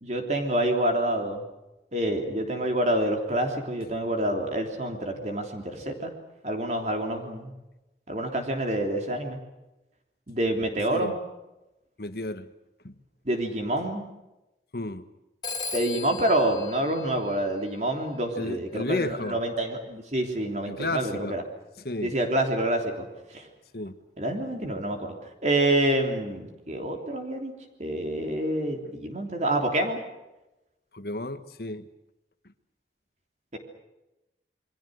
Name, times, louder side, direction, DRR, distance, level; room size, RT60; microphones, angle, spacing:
voice 1, 0.0-1.4 1.9-6.1 6.4-7.5 8.1-9.4 10.3-11.2 13.2-14.0 15.7-21.4 22.0-23.5 24.2-25.1 25.4-27.5 27.8-30.0 33.5-33.6, right 1 dB, 40° right, 3.3 m, -27 dB
voice 2, 12.0-12.5 12.8-13.0 14.7-15.0 18.3-19.4 20.7-21.4 21.8-22.2 23.7-24.0 30.9-31.9, left 2 dB, 60° left, 1.6 m, -32 dB
Telephone, 15.4-17.9, left 4 dB, 25° left, 2.8 m, -38 dB
28.0 x 23.5 x 6.5 m
head